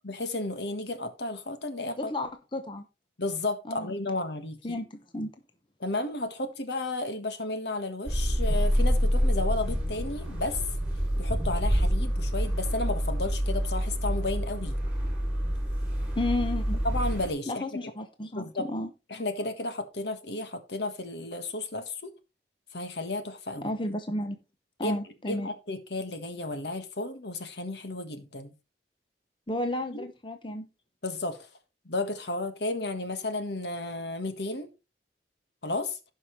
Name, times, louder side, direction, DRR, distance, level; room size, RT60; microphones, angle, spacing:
voice 1, 0.0-2.1 3.2-4.8 5.8-10.6 11.2-14.8 16.8-17.9 18.4-18.7 19.1-22.1 22.7-23.7 24.8-25.0 25.3-28.5 29.9-30.0 31.0-31.5 31.8-34.7 35.6-36.0, left 2 dB, 75° left, 1.5 m, -33 dB
voice 2, 2.0-2.8 3.7-3.9 4.6-4.9 5.1-5.3 16.2-16.8 17.5-18.9 23.6-24.4 24.8-25.5 29.5-30.7, left 1 dB, 25° left, 0.9 m, -32 dB
sound 1, 8.1-17.3, equal, 5° right, 4.5 m, -27 dB
16.5 x 5.5 x 3.2 m
head